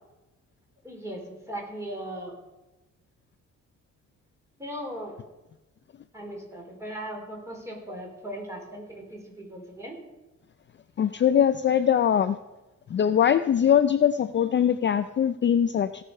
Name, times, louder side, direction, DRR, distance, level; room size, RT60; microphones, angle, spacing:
voice 1, 0.8-2.4 4.6-5.2 6.1-10.0, right 1 dB, 10° right, 0 dB, 4.0 m, -38 dB
voice 2, 11.0-12.4 12.9-16.0, left 9 dB, 35° left, 11 dB, 0.4 m, -22 dB
16.5 x 6.6 x 5.4 m, 1.0 s
cardioid pair, 100°, 31 cm